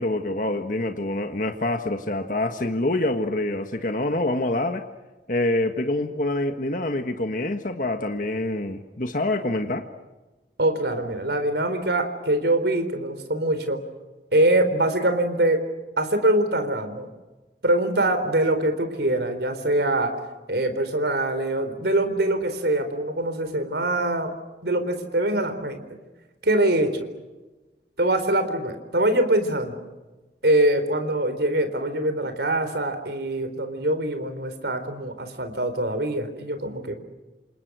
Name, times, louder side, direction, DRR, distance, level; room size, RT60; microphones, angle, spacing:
voice 1, 0.0-4.8 5.3-9.8, left 2 dB, 45° left, 6 dB, 1.6 m, -26 dB
voice 2, 10.6-13.8 14.3-15.6 16.0-17.1 17.6-20.1 20.5-24.3 24.6-25.8 26.4-27.0 28.0-29.8 30.4-36.9, right 1 dB, 65° right, 8 dB, 4.1 m, -23 dB
28.0 x 28.0 x 6.3 m, 1.2 s
head